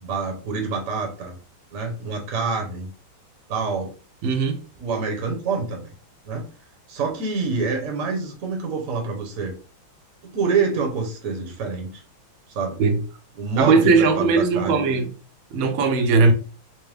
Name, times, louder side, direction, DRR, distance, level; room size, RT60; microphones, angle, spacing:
voice 1, 0.0-1.4 1.7-2.9 3.5-3.9 4.8-5.9 6.2-6.5 6.9-9.5 10.2-12.0 12.5-12.8 13.4-14.8, right 4 dB, 55° right, 1.0 m, -26 dB
voice 2, 4.2-4.6 12.8-13.0 13.6-15.1 15.5-16.3, right 4 dB, 80° right, 1.5 m, -18 dB
4.4 x 2.1 x 3.3 m
omnidirectional pair, 2.3 m